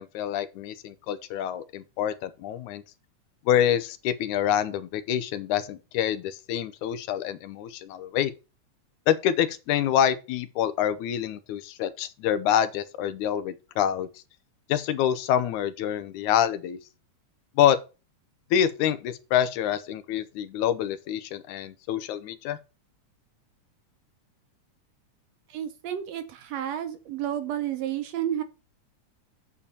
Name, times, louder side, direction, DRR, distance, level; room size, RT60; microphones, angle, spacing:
voice 1, 0.0-2.8 3.5-8.3 9.1-14.1 14.7-16.8 17.6-17.8 18.5-22.6, left 10 dB, 85° left, 2.1 m, -26 dB
voice 2, 25.5-28.4, right 10 dB, 70° right, 1.7 m, -31 dB
8.6 x 4.5 x 6.9 m
omnidirectional pair, 3.5 m